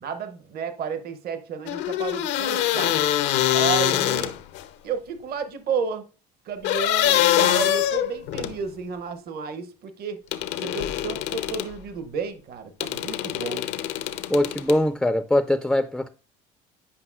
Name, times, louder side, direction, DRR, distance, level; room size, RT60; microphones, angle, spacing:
voice 1, 0.0-3.0 3.5-4.3 4.8-6.0 6.5-10.2 10.6-13.7, right 6 dB, 55° right, 0.8 m, -32 dB
sound 1, 1.7-4.7 6.6-8.6 10.3-11.7 12.8-14.8, left 12 dB, 70° left, 0.6 m, -24 dB
voice 2, 14.3-16.1, left 1 dB, ahead, 0.4 m, -22 dB
9.6 x 5.3 x 2.4 m
hypercardioid pair, 65°, 20 cm